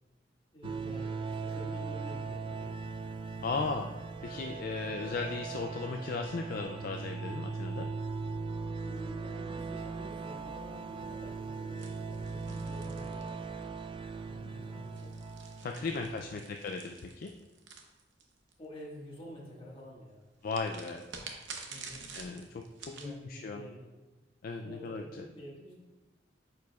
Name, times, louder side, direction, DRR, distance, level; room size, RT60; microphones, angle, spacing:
voice 1, 0.5-2.8 4.3-5.2 8.8-13.5 14.2-15.2 15.8-16.5 18.6-20.2 21.7-22.1 22.9-23.9 24.6-25.7, equal, 30° left, -5 dB, 1.6 m, -49 dB
sound 1, 0.6-16.5, right 4 dB, 30° right, 0.3 m, -39 dB
voice 2, 3.4-3.9 4.2-7.9 15.6-17.3 20.4-21.0 22.1-23.6 24.4-25.3, left 3 dB, 50° left, 4 dB, 0.3 m, -36 dB
sound 2, 11.8-13.8 14.8-18.5 20.5-23.1, right 5 dB, 70° right, 0.8 m, -48 dB
9.0 x 4.8 x 2.3 m, 1.1 s
head